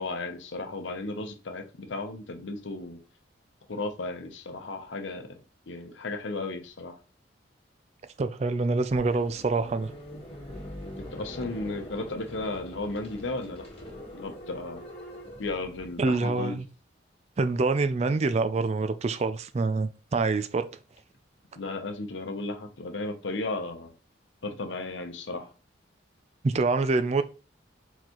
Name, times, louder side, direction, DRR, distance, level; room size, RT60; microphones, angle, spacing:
voice 1, 0.0-3.0 3.7-5.4 5.7-7.0 11.0-13.7 14.1-14.8 15.4-16.6 21.6-23.9 24.4-25.5, left 2 dB, 75° left, 0.8 m, -34 dB
voice 2, 8.2-9.9 16.0-16.6 17.4-20.7 26.4-27.2, right 3 dB, 35° right, 0.3 m, -26 dB
sound 1, 8.9-16.1, left 1 dB, 30° left, 1.4 m, -43 dB
4.3 x 3.9 x 3.0 m
head